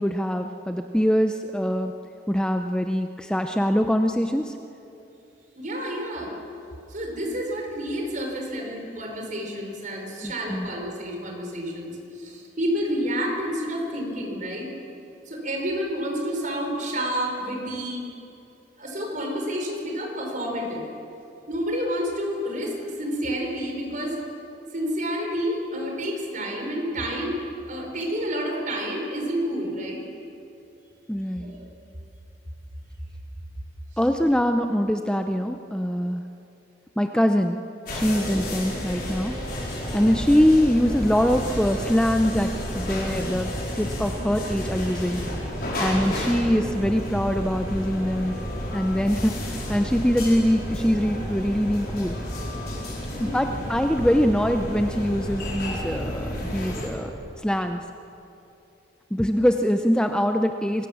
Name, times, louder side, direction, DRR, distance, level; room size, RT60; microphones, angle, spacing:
voice 1, 0.0-1.9 2.3-4.5 10.2-10.7 31.1-31.5 34.0-36.2 37.0-37.6 37.9-39.4 39.9-43.5 43.8-45.2 45.8-48.3 48.7-52.2 53.2-57.1 57.4-57.8 59.1-60.9, equal, 5° left, 6 dB, 0.6 m, -23 dB
voice 2, 5.6-6.3 6.9-14.7 15.3-18.0 18.8-20.9 21.5-24.2 24.7-30.0 31.4-31.7 53.1-53.5, equal, 45° right, 1 dB, 4.5 m, -29 dB
sound 1, 37.9-56.9, equal, 55° left, 4.8 m, -31 dB
25.5 x 16.5 x 7.2 m, 2.8 s
head